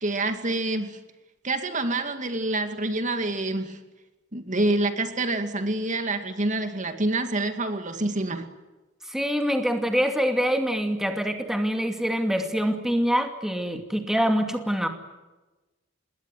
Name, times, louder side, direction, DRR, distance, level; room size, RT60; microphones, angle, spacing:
voice 1, 0.0-1.0 1.4-3.8 4.3-8.5, right 2 dB, 40° right, 7 dB, 2.3 m, -27 dB
voice 2, 9.1-14.9, equal, ahead, 5 dB, 2.5 m, -25 dB
27.5 x 21.0 x 9.3 m, 1.1 s
head